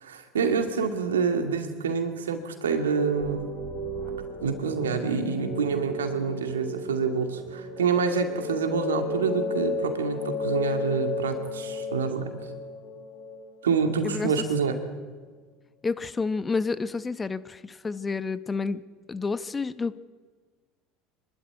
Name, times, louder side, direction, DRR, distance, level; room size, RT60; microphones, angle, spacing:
voice 1, 0.0-3.5 4.4-12.2 13.6-14.8, right 5 dB, 90° right, 7 dB, 2.2 m, -27 dB
sound 1, 2.7-14.3, left 1 dB, 60° left, 5.2 m, -33 dB
voice 2, 15.8-18.8 19.1-20.0, left 4 dB, 20° left, 14 dB, 1.0 m, -29 dB
25.0 x 12.0 x 9.7 m, 1.4 s
hypercardioid pair, 80°, 0 cm